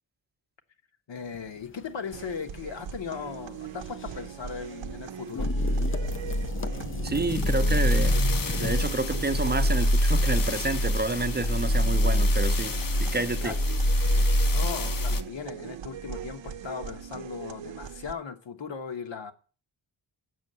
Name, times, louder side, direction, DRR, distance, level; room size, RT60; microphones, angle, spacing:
voice 1, 1.1-5.5 13.4-13.6 14.5-19.3, left 6 dB, 65° left, 1.2 m, -37 dB
sound 1, 1.2-14.4, left 5 dB, 30° left, 0.4 m, -41 dB
sound 2, 2.1-18.1, right 8 dB, 70° right, 0.6 m, -40 dB
sound 3, 5.4-15.2, equal, 45° left, 0.8 m, -25 dB
voice 2, 7.0-8.2 8.5-12.7 13.0-13.5, right 3 dB, 20° right, 0.7 m, -29 dB
7.1 x 6.5 x 7.8 m
wide cardioid pair, 160°, 47 cm